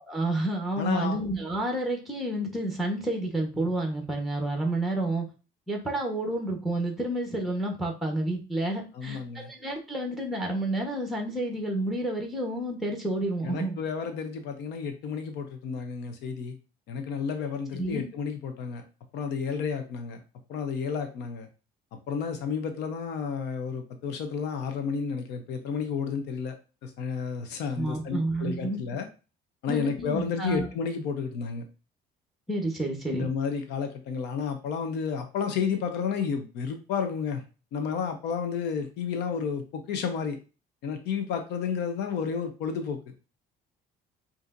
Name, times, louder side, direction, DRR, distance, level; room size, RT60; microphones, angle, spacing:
voice 1, 0.1-5.2 5.7-13.8 17.7-18.1 27.8-28.8 29.7-30.7 32.5-33.3, right 1 dB, ahead, 2 dB, 1.0 m, -30 dB
voice 2, 0.8-1.2 8.9-9.5 13.4-16.5 16.9-18.8 19.1-20.2 20.5-21.5 22.1-26.6 26.8-29.1 29.6-31.6 33.1-37.4 37.7-40.4 40.8-43.0, left 6 dB, 85° left, 7 dB, 0.8 m, -31 dB
5.2 x 2.8 x 2.5 m, 0.33 s
cardioid pair, 110°, 17 cm